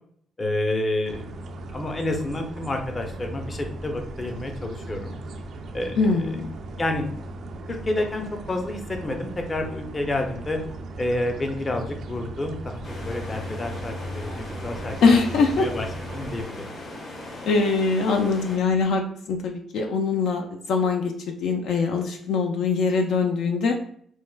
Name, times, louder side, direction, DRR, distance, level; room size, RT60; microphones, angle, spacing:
voice 1, 0.4-1.2 1.7-5.2 5.7-6.4 6.8-7.1 7.7-10.6 11.0-15.9 16.1-16.7, left 2 dB, 30° left, 4 dB, 0.6 m, -29 dB
sound 1, 1.0-16.4, right 1 dB, 65° right, 0.3 m, -37 dB
voice 2, 6.0-6.5 15.0-15.7 17.5-23.8, left 4 dB, 75° left, 3 dB, 0.4 m, -22 dB
sound 2, 12.8-18.6, left 1 dB, 55° left, 1.0 m, -39 dB
4.5 x 2.1 x 2.2 m, 0.63 s
cardioid pair, 90°, 0 cm